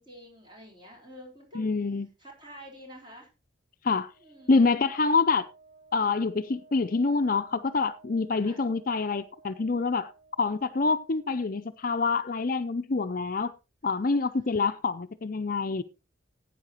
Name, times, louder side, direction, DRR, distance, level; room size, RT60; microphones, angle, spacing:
voice 1, 0.0-1.6 2.2-3.3 4.2-4.6 8.4-8.6 14.0-14.8, equal, 25° right, 4.1 m, -49 dB
voice 2, 1.5-2.1 3.8-4.1 4.5-5.4 5.9-10.1 10.4-13.5 13.8-15.8, left 4 dB, 45° left, 0.5 m, -26 dB
Wind instrument woodwind instrument, 4.0-11.9, right 3 dB, 75° right, 6.2 m, -57 dB
16.0 x 9.1 x 2.9 m
head